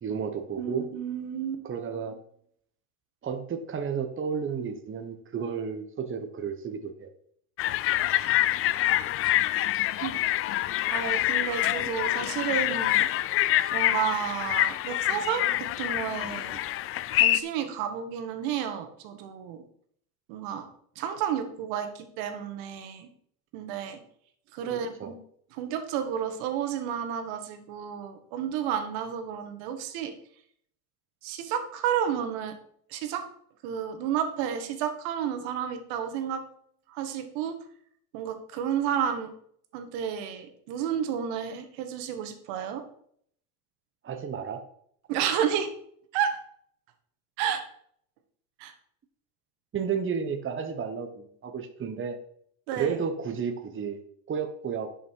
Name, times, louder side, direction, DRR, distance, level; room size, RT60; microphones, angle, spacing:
voice 1, 0.0-0.9 1.6-2.2 3.2-7.1 24.6-25.1 44.0-44.6 49.7-52.2 52.7-54.0 54.3-54.9, right 6 dB, 25° right, 7 dB, 1.3 m, -32 dB
voice 2, 0.6-1.6 8.0-8.2 10.0-10.2 10.9-13.1 13.7-16.6 17.1-19.6 20.3-20.7 21.0-23.1 23.5-24.0 24.5-25.1 25.5-30.1 31.2-32.6 32.9-33.3 33.6-36.4 36.9-37.6 38.1-39.3 39.7-42.8 45.1-45.7 46.1-46.4 47.4-47.6 48.6-48.7 52.7-53.0, right 8 dB, 65° right, 8 dB, 2.0 m, -31 dB
sound 1, 7.6-17.4, left 14 dB, 30° left, 0.4 m, -26 dB
11.0 x 6.3 x 4.8 m, 0.64 s
supercardioid pair, 110°, 49 cm